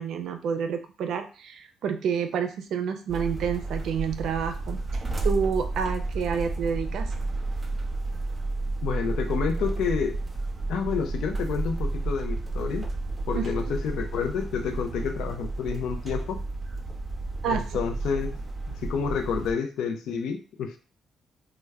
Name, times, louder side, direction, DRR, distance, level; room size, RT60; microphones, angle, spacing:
voice 1, 0.0-4.8 5.2-7.1 13.3-13.8 17.4-17.6, right 7 dB, 75° right, 7 dB, 0.4 m, -29 dB
sound 1, 3.1-19.5, right 2 dB, 25° right, 0.6 m, -31 dB
voice 2, 8.8-10.2 10.7-12.9 13.3-16.4 17.4-18.4 18.7-20.8, left 6 dB, 80° left, 7 dB, 0.4 m, -29 dB
3.4 x 2.2 x 3.2 m, 0.37 s
cardioid pair, 90°, 0 cm